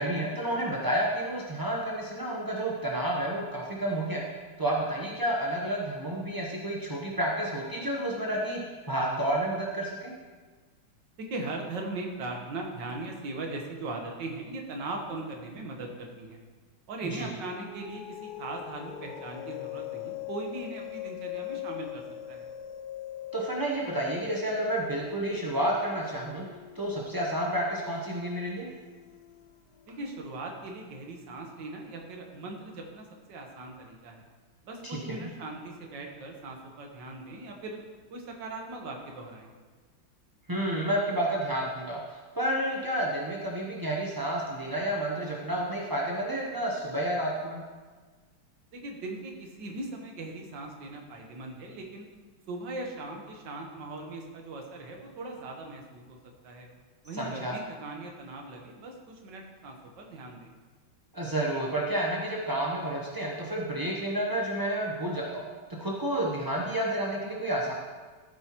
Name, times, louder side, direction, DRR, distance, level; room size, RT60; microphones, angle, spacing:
voice 1, 0.0-4.3 4.6-8.6 8.9-10.1 17.1-17.3 23.3-26.5 26.7-28.7 34.8-35.3 40.5-47.6 57.2-57.6 61.1-67.7, right 1 dB, 35° right, -3 dB, 0.3 m, -30 dB
voice 2, 11.2-16.4 16.9-22.5 29.9-34.2 34.6-37.8 38.1-39.5 48.7-52.1 52.5-56.2 56.4-56.7 57.0-60.5, right 2 dB, 65° right, 1 dB, 1.9 m, -39 dB
sound 1, 17.5-30.3, left 13 dB, 80° left, 0.8 m, -42 dB
13.5 x 7.8 x 3.0 m, 1.4 s
omnidirectional pair, 2.2 m